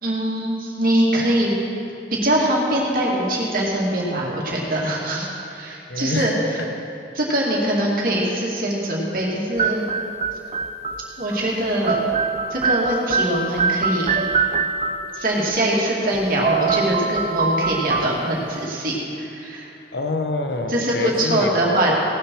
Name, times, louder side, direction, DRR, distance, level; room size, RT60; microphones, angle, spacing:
voice 1, 0.0-1.5 2.1-6.3 7.1-9.8 11.2-12.0 12.5-14.2 15.1-19.7 20.7-21.9, right 1 dB, 55° right, -4 dB, 2.3 m, -22 dB
voice 2, 5.9-6.9 19.9-21.9, left 2 dB, 75° left, 6 dB, 1.0 m, -27 dB
sound 1, 9.6-11.4 11.6-15.2 16.1-16.2 16.4-18.6, right 4 dB, 35° right, 0.5 m, -24 dB
18.0 x 6.7 x 6.2 m, 2.9 s
head